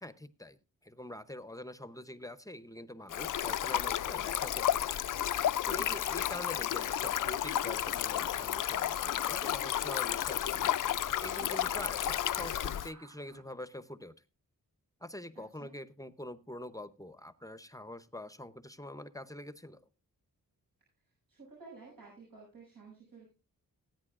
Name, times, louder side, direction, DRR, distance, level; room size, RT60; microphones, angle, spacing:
voice 1, 0.0-5.0 5.6-10.8 11.2-14.1 15.0-19.9, left 1 dB, 10° left, 13 dB, 0.7 m, -45 dB
Stream, 3.1-12.9, left 11 dB, 65° left, 0.5 m, -32 dB
sound 1, 7.4-13.4, right 5 dB, 60° right, 1.4 m, -53 dB
voice 2, 7.9-8.2 15.6-15.7 21.0-23.3, right 4 dB, 80° right, -4 dB, 6.5 m, -53 dB
19.0 x 9.3 x 2.5 m, 0.31 s
wide cardioid pair, 95°, 34 cm